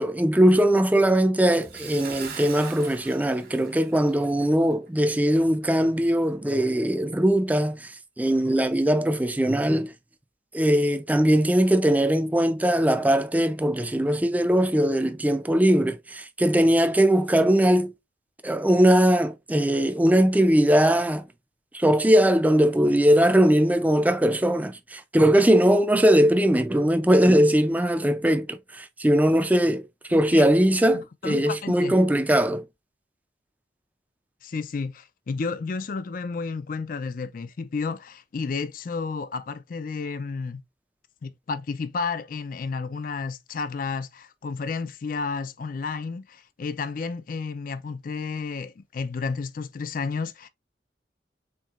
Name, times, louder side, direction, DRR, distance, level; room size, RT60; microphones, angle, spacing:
voice 1, 0.0-7.9 8.2-9.9 10.5-17.9 18.4-21.3 21.7-29.8 30.1-32.6, right 1 dB, 10° right, 0.4 m, -20 dB
Bathtub (filling or washing) / Splash splatter, 1.5-4.4 4.7-4.9 5.4-5.5, right 6 dB, 60° right, 1.5 m, -42 dB
voice 2, 30.1-30.5 30.9-31.9 34.4-40.6 41.2-50.5, left 4 dB, 50° left, 0.4 m, -32 dB
4.5 x 3.6 x 2.4 m
head